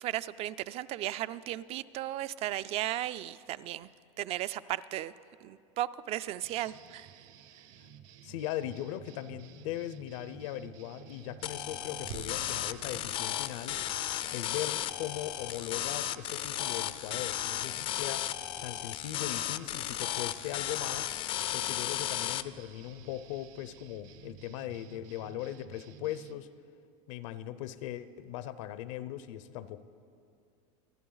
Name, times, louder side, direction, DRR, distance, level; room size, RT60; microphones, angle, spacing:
voice 1, 0.0-3.9 4.2-5.1 5.4-7.1, right 14 dB, 35° right, 17 dB, 0.4 m, -35 dB
sound 1, 6.4-26.4, right 9 dB, 55° right, 0.9 m, -54 dB
voice 2, 8.2-13.9 14.3-18.3 18.6-21.1 21.5-26.5 27.1-29.8, left 12 dB, 70° left, 14 dB, 0.6 m, -39 dB
sound 2, 11.4-22.4, left 12 dB, 30° left, 0.4 m, -35 dB
sound 3, 12.0-18.7 19.0-19.3 19.7-19.9 20.4-20.6, right 7 dB, 85° right, 1.4 m, -53 dB
25.5 x 10.5 x 3.9 m, 2.4 s
supercardioid pair, 140°, 17 cm